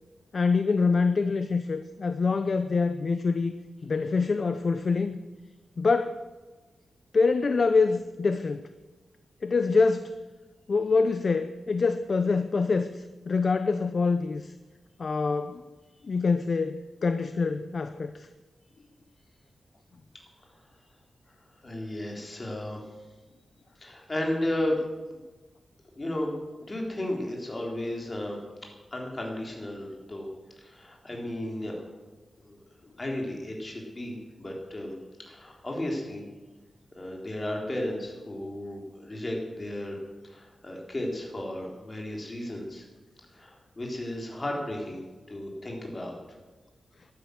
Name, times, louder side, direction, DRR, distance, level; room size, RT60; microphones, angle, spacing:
voice 1, 0.3-3.5 3.8-5.2 5.8-6.2 7.1-8.6 9.4-10.2 10.7-14.5 15.0-15.6 16.0-18.3, left 4 dB, 45° left, 10 dB, 0.6 m, -25 dB
voice 2, 21.6-22.9 23.8-24.8 25.1-25.2 25.9-26.3 26.7-28.4 28.9-30.3 30.6-31.9 32.4-32.6 33.0-36.2 37.0-42.9 43.3-46.2, left 1 dB, 25° left, -1 dB, 3.7 m, -34 dB
14.5 x 12.0 x 6.4 m, 1.2 s
wide cardioid pair, 125°, 0 cm